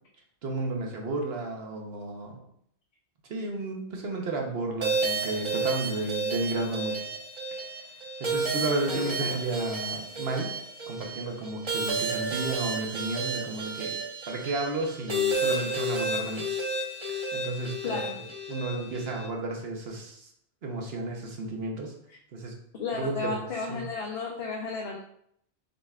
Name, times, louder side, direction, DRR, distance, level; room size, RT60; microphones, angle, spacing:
voice 1, 0.4-2.4 3.3-7.1 8.2-10.6 10.9-16.4 17.1-18.0 18.5-20.3 20.6-21.9 22.3-22.5 22.9-23.9, right 2 dB, 70° right, 1 dB, 1.1 m, -32 dB
sound 1, 4.8-19.3, right 2 dB, 30° right, 0.9 m, -31 dB
voice 2, 8.9-9.4 17.8-18.2 22.1-22.2 22.8-25.0, left 4 dB, 70° left, -1 dB, 0.9 m, -33 dB
6.5 x 3.3 x 2.4 m, 0.69 s
omnidirectional pair, 1.1 m